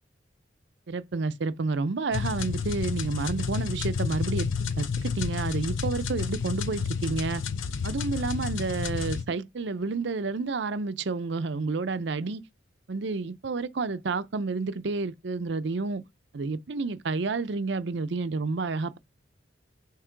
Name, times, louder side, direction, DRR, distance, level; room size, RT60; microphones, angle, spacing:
voice 1, 0.9-4.5 4.8-7.4 7.8-12.4 12.9-16.0 16.3-19.0, right 3 dB, 60° right, 0.5 m, -30 dB
sound 1, 2.1-9.2, left 5 dB, 85° left, 0.5 m, -30 dB
7.4 x 3.0 x 4.5 m
head